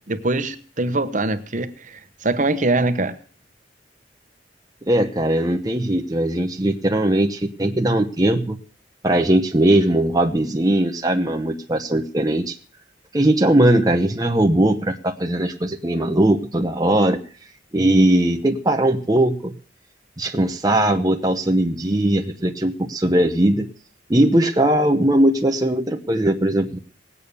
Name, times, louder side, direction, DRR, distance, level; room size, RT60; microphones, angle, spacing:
voice 1, 0.1-3.2, right 2 dB, 45° right, 11 dB, 1.1 m, -23 dB
voice 2, 4.9-8.6 9.0-12.5 13.1-17.2 17.7-19.5 20.2-23.7 24.1-26.8, right 1 dB, 20° right, 4 dB, 0.9 m, -19 dB
19.0 x 8.5 x 6.9 m, 0.43 s
head